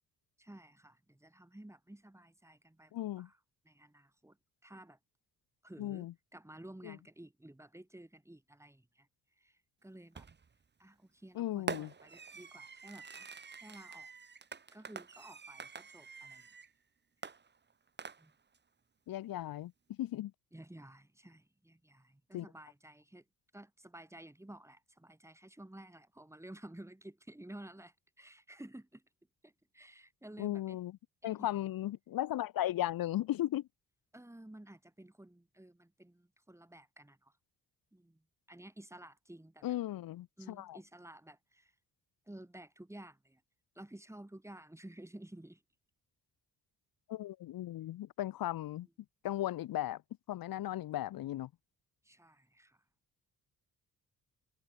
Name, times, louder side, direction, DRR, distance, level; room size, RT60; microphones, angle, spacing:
voice 1, 0.4-3.4 3.6-4.4 4.6-5.0 5.6-9.1 9.4-10.3 10.8-14.1 14.7-16.5 18.2-18.3 20.5-23.2 23.5-29.0 29.4-30.8 31.2-31.5 34.1-37.3 37.9-39.8 40.4-41.7 42.3-43.4 43.7-45.6 52.0-52.8, right 1 dB, 5° right, 5.0 m, -53 dB
voice 2, 2.9-3.3 5.8-6.1 6.8-7.0 11.3-11.9 19.1-20.3 22.3-22.5 30.4-30.9 31.2-33.7 39.6-40.8 47.1-48.9 49.2-50.0 50.3-51.5, left 14 dB, 70° left, 0.7 m, -36 dB
Fireworks, 10.1-10.6 11.7-16.7 17.2-18.6, right 5 dB, 30° right, 1.2 m, -46 dB
cardioid pair, 90°, 37 cm